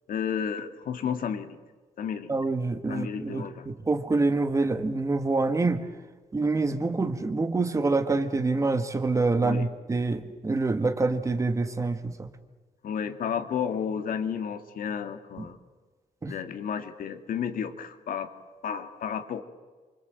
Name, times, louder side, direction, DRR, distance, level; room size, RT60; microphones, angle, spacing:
voice 1, 0.1-1.6 2.0-2.3 2.9-3.7 9.4-9.7 12.8-15.6 16.3-18.3 18.6-19.4, left 7 dB, 70° left, 8 dB, 2.1 m, -32 dB
voice 2, 2.3-5.8 6.3-12.3 16.2-16.3, right 3 dB, 20° right, 8 dB, 1.5 m, -26 dB
28.5 x 25.0 x 7.9 m, 1.3 s
wide cardioid pair, 175°, 15 cm